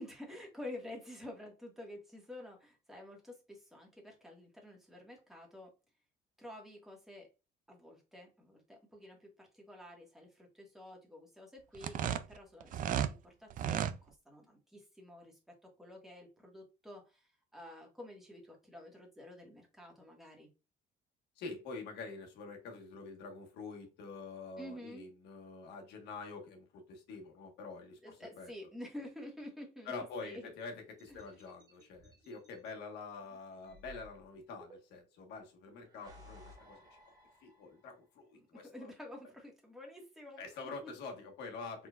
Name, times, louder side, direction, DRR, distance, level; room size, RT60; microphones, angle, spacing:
voice 1, 0.0-5.7 6.4-7.3 7.7-20.5 24.6-25.1 28.0-29.9 30.2-30.5 31.1-31.3 38.3-40.9, left 1 dB, ahead, 1.7 m, -50 dB
sound 1, 11.7-13.1 13.5-14.0, right 9 dB, 55° right, 0.5 m, -33 dB
voice 2, 21.4-28.5 29.8-36.8 37.4-38.9 40.4-41.9, left 4 dB, 80° left, 1.4 m, -46 dB
sound 2, 31.0-32.7 33.6-35.2 35.8-38.0, left 1 dB, 20° right, 1.5 m, -58 dB
4.5 x 3.9 x 2.4 m
cardioid pair, 110°, 17 cm